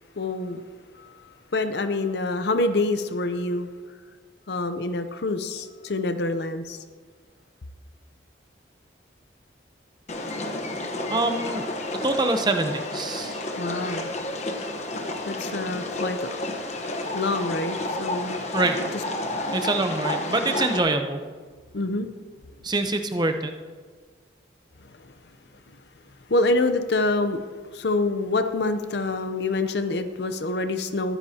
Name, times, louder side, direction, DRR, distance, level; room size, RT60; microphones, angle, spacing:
voice 1, 0.2-0.6 0.9-3.7 4.5-6.8 13.3-14.2 14.9-16.6 17.1-18.5 21.7-22.1 24.8-25.1 26.3-27.4 27.7-31.2, left 2 dB, 60° left, 8 dB, 0.7 m, -27 dB
sound 1, 10.1-20.8, left 1 dB, 35° left, 1.1 m, -31 dB
voice 2, 11.1-11.6 12.0-13.4 18.5-18.8 19.5-21.2 22.6-23.5, right 2 dB, 20° right, 6 dB, 0.8 m, -25 dB
21.0 x 10.0 x 2.9 m, 1.5 s
head